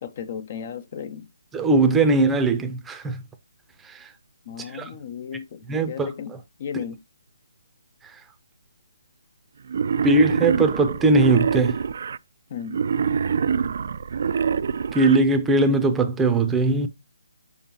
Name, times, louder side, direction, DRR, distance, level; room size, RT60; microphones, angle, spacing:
voice 1, 0.0-1.3 4.5-7.0 12.5-12.8, left 7 dB, 35° left, 0.5 m, -35 dB
voice 2, 1.5-3.2 3.8-4.1 4.6-4.9 5.7-6.1 10.0-11.8 14.9-16.9, right 2 dB, 5° right, 0.6 m, -20 dB
Wild animals, 9.7-12.2 12.7-15.2, right 6 dB, 50° right, 0.3 m, -25 dB
6.9 x 5.1 x 2.9 m
hypercardioid pair, 160°, 0 cm